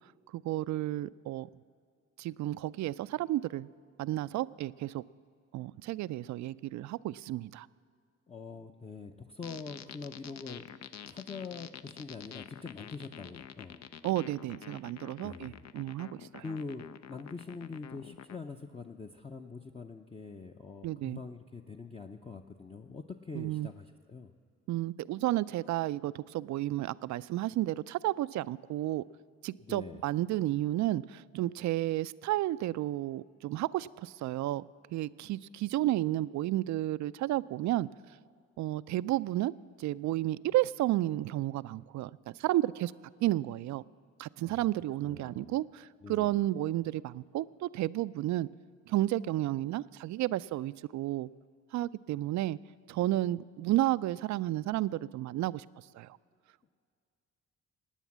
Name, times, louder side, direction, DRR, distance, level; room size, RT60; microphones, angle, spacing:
voice 1, 0.3-1.5 2.2-3.7 4.0-5.0 5.5-7.7 14.0-16.4 20.8-21.2 23.3-23.7 24.7-29.0 29.4-34.7 34.9-37.9 38.6-39.5 39.8-42.9 43.2-43.8 44.2-48.5 48.9-51.3 51.7-52.6 52.9-55.6 55.9-56.2, right 15 dB, 70° right, 18 dB, 0.4 m, -32 dB
voice 2, 8.3-10.7 11.1-13.9 15.2-15.7 16.4-24.3 29.6-30.1 44.4-44.7 45.0-45.6 46.0-46.4, left 4 dB, 20° left, 3 dB, 0.7 m, -44 dB
sound 1, 9.4-18.4, left 9 dB, 60° left, 0.6 m, -48 dB
17.5 x 9.3 x 7.3 m, 2.2 s
cardioid pair, 90°, 30 cm